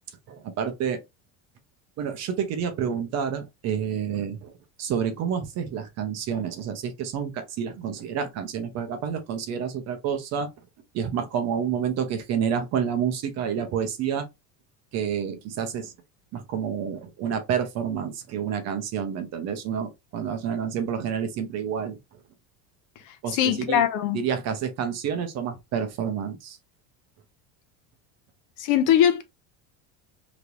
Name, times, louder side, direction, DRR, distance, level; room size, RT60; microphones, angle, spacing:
voice 1, 0.3-1.0 2.0-4.5 4.8-10.5 10.9-14.3 14.9-15.9 16.3-22.0 23.2-23.8 24.1-26.6, right 7 dB, 40° right, 0.7 m, -29 dB
voice 2, 23.3-24.2 28.6-29.2, left 10 dB, 50° left, 0.6 m, -21 dB
3.2 x 3.0 x 2.5 m
cardioid pair, 145°, 40 cm